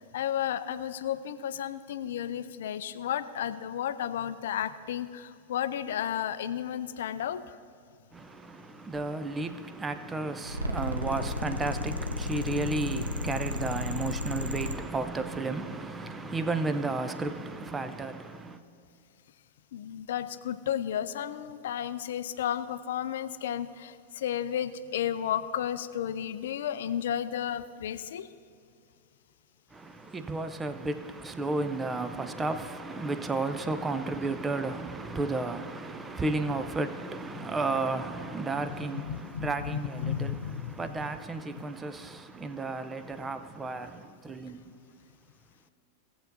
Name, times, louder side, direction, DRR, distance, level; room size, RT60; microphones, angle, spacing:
voice 1, 0.0-7.4 19.7-28.3 37.3-37.5 38.6-40.9, left 10 dB, 60° left, 0.5 m, -33 dB
voice 2, 8.1-18.6 29.7-44.6, right 3 dB, 15° right, 0.6 m, -33 dB
sound 1, 10.4-14.8, left 2 dB, 80° right, 0.6 m, -33 dB
18.5 x 7.7 x 2.7 m
figure-of-eight pair, 90°, 0 cm